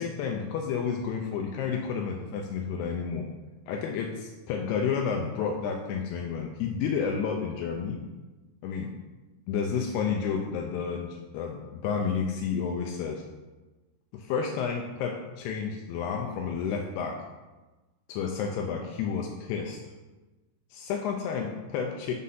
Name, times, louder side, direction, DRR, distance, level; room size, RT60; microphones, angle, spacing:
voice 1, 0.0-3.3 3.7-8.0 8.6-8.9 9.5-13.2 14.1-17.2 18.1-19.8 20.7-22.1, left 6 dB, 85° left, 2 dB, 2.6 m, -31 dB
6.2 x 4.1 x 5.5 m, 1.2 s
omnidirectional pair, 4.7 m